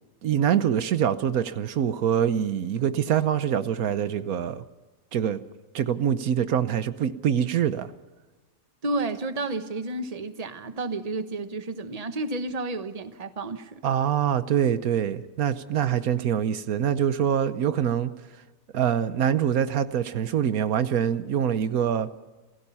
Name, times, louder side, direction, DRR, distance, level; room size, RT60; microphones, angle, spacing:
voice 1, 0.2-4.6 5.1-5.4 5.7-7.9 13.8-18.1 18.7-22.1, right 9 dB, 85° right, 1.4 m, -24 dB
voice 2, 8.8-13.8, right 2 dB, 30° right, 1.2 m, -31 dB
28.0 x 16.5 x 5.7 m
omnidirectional pair, 1.5 m